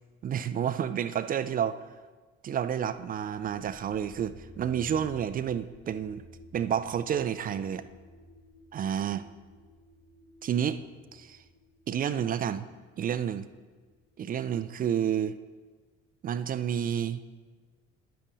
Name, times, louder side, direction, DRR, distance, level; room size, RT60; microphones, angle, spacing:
voice 1, 0.2-1.8 2.4-6.2 6.5-7.8 8.7-9.3 10.4-10.8 11.1-11.4 11.9-12.6 13.0-13.5 14.2-15.4 16.2-17.2, right 9 dB, 25° right, 13 dB, 0.4 m, -30 dB
sound 1, 2.8-14.6, equal, 30° left, 3.3 m, -54 dB
15.0 x 11.0 x 2.5 m, 1.4 s
figure-of-eight pair, 55°, 36 cm